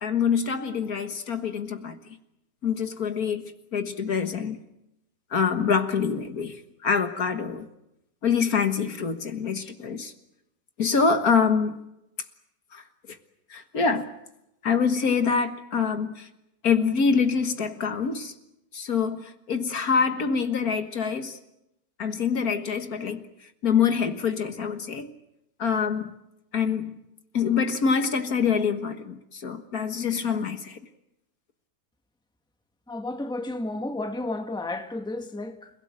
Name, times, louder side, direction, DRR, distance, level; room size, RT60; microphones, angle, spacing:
voice 1, 0.0-2.0 2.6-3.4 3.7-4.6 5.3-7.7 8.2-10.1 10.8-11.8 12.7-13.2 13.5-14.1 14.6-16.3 16.6-18.3 18.7-21.4 22.0-23.2 23.6-25.1 25.6-26.1 26.5-27.0 27.3-30.8, left 6 dB, 60° left, 1.9 m, -25 dB
voice 2, 32.9-35.7, left 2 dB, 5° left, 1.5 m, -32 dB
29.5 x 17.0 x 9.0 m
omnidirectional pair, 1.8 m